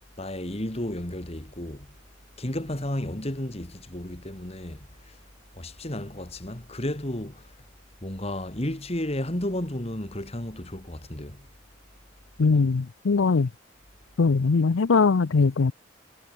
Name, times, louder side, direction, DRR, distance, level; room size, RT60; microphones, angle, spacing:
voice 1, 0.2-1.9 2.4-5.2 5.5-7.6 8.0-11.5, left 1 dB, 30° left, 2.2 m, -33 dB
voice 2, 12.4-13.5 14.2-15.7, left 4 dB, 75° left, 0.6 m, -21 dB
head